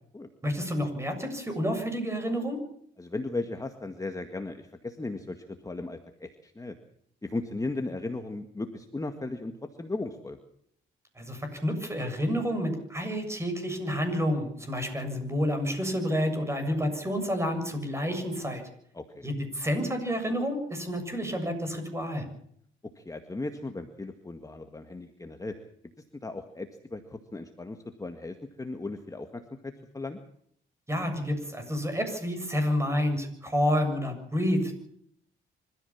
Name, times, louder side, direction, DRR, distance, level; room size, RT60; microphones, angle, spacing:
voice 1, 0.4-2.6 11.2-18.6 19.2-22.2 30.9-34.7, equal, 15° right, 6 dB, 7.2 m, -29 dB
voice 2, 3.0-6.8 7.2-9.5 9.8-10.4 18.9-19.3 23.0-25.5 26.2-30.2, left 2 dB, 15° left, 6 dB, 1.9 m, -36 dB
25.5 x 14.5 x 7.3 m, 0.66 s
cardioid pair, 90°, 20 cm